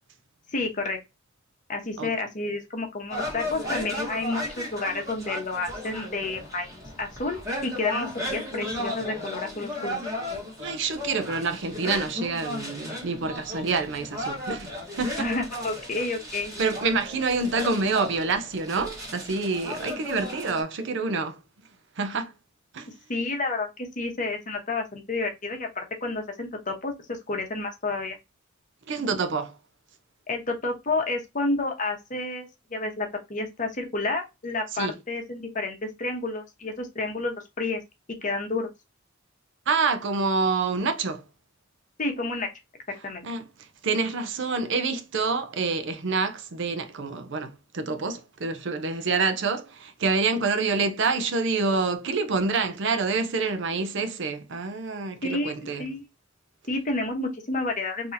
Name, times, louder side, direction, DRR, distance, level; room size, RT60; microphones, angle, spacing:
voice 1, 0.5-1.0 1.7-10.0 15.2-16.5 23.1-28.2 30.3-37.8 38.2-38.7 42.0-42.5 43.0-43.3 55.2-55.5 55.8-56.0 56.7-58.1, left 2 dB, 40° left, 1.0 m, -30 dB
sound 1, 3.1-20.6, left 1 dB, 15° right, 1.3 m, -35 dB
voice 2, 10.6-15.3 15.7-16.2 16.6-21.4 22.0-22.3 22.7-22.9 28.9-29.5 34.7-35.0 39.7-41.2 42.9-43.5 43.8-55.9, right 4 dB, 60° right, 0.6 m, -27 dB
3.8 x 2.8 x 2.7 m
head